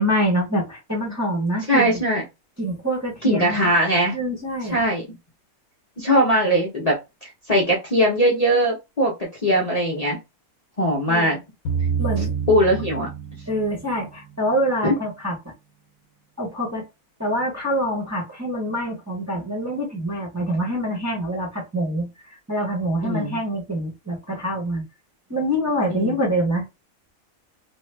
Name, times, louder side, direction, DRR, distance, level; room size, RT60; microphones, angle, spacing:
voice 1, 0.0-2.0 2.6-3.7 4.1-4.8 11.1-11.4 12.0-12.3 13.5-15.3 16.4-16.8 17.2-22.1 22.5-24.8 25.3-26.7, equal, 15° right, 0.8 m, -25 dB
voice 2, 1.7-2.2 3.2-4.2 4.6-5.0 6.0-10.2 10.8-11.4 12.2-13.1 14.8-14.9 23.0-23.4 25.9-26.1, equal, 35° left, 0.7 m, -20 dB
sound 1, 11.7-15.4, right 6 dB, 80° left, 1.2 m, -29 dB
2.6 x 2.4 x 3.2 m
omnidirectional pair, 1.5 m